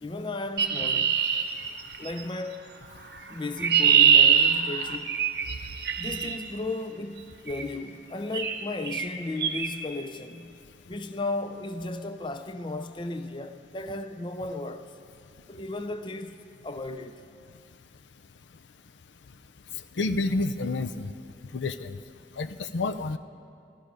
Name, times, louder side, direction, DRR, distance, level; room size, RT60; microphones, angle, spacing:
voice 1, 0.0-1.2 2.0-2.7 3.3-5.2 6.0-10.6 10.9-14.9 15.5-17.2, left 2 dB, 25° left, 0.5 m, -35 dB
Chirp tweet, 0.6-2.2 3.2-6.4 7.5-7.7 8.3-8.6 8.9-9.1 9.4-9.7, right 8 dB, 60° right, 0.8 m, -23 dB
voice 2, 20.0-21.1 21.5-22.0 22.4-23.2, left 3 dB, 90° left, 0.5 m, -29 dB
14.5 x 14.0 x 5.1 m
head